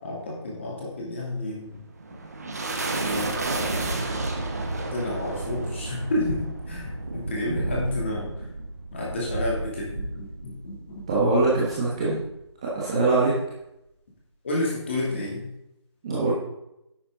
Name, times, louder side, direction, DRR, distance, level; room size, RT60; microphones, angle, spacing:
voice 1, 0.0-1.8 2.1-2.6 3.0-4.0 4.8-8.3 8.9-10.8 11.1-11.3 14.4-15.5, left 2 dB, 25° left, -4 dB, 2.8 m, -31 dB
sound 1, 1.7-12.4, right 2 dB, 35° right, 1.2 m, -32 dB
voice 2, 11.1-12.2 12.7-13.4 16.0-16.3, right 3 dB, 10° right, -7 dB, 1.1 m, -22 dB
10.5 x 8.5 x 3.9 m, 0.86 s
figure-of-eight pair, 175°, 15 cm